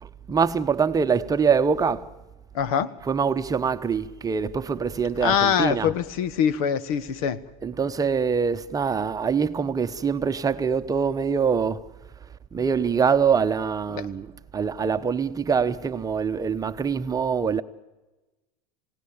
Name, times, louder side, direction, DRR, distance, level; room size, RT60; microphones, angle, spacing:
voice 1, 0.0-2.1 3.0-6.0 7.6-11.9 12.5-17.6, right 6 dB, 20° right, 1.0 m, -24 dB
voice 2, 2.5-2.9 5.2-7.4 13.9-14.1, left 8 dB, 75° left, 1.4 m, -23 dB
28.0 x 17.0 x 8.8 m
supercardioid pair, 120°, 19 cm